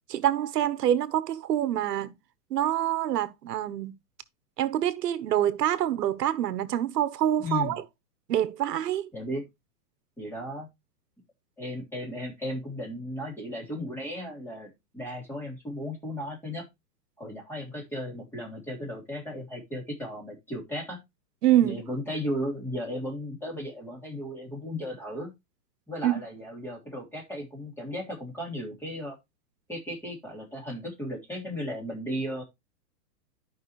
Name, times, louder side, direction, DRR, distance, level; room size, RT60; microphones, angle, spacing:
voice 1, 0.1-2.1 2.5-3.9 4.6-7.8 8.3-9.1 21.4-21.8 26.0-26.2, right 11 dB, 80° right, 1.2 m, -26 dB
voice 2, 7.4-7.8 9.1-9.4 10.2-10.7 11.6-16.6 17.2-21.0 21.6-25.3 25.9-29.2 29.7-32.4, left 1 dB, 5° left, 3.3 m, -35 dB
12.5 x 5.5 x 3.1 m
hypercardioid pair, 160°, 47 cm